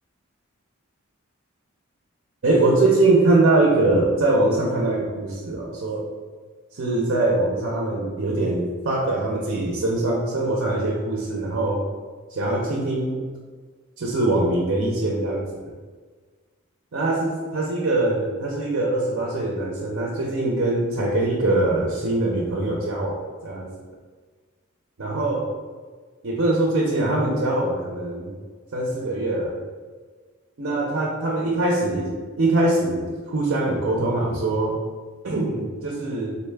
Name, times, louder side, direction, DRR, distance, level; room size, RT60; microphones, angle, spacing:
voice 1, 2.4-6.1 6.7-11.8 12.3-13.3 14.0-15.4 16.9-23.7 25.0-25.5 26.2-28.3 28.7-29.6 30.6-34.7 35.2-36.4, right 2 dB, 60° right, -2 dB, 0.5 m, -22 dB
3.9 x 2.2 x 3.2 m, 1.5 s
head